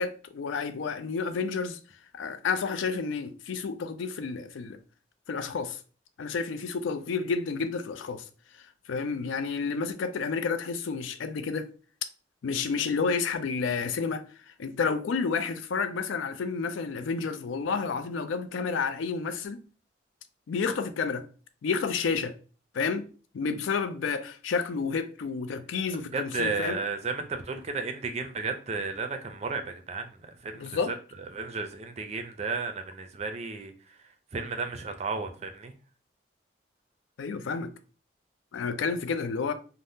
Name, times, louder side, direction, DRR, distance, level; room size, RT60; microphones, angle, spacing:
voice 1, 0.0-1.8 2.1-4.8 5.3-5.8 6.2-8.2 8.9-11.7 12.4-19.6 20.5-21.2 21.6-22.4 22.7-23.1 23.3-26.8 30.5-30.9 37.2-37.7 38.5-39.5, left 5 dB, 90° left, 0.4 m, -30 dB
voice 2, 25.9-31.0 31.3-33.7 34.3-35.7, right 4 dB, 35° right, 0.4 m, -33 dB
2.6 x 2.0 x 3.4 m
head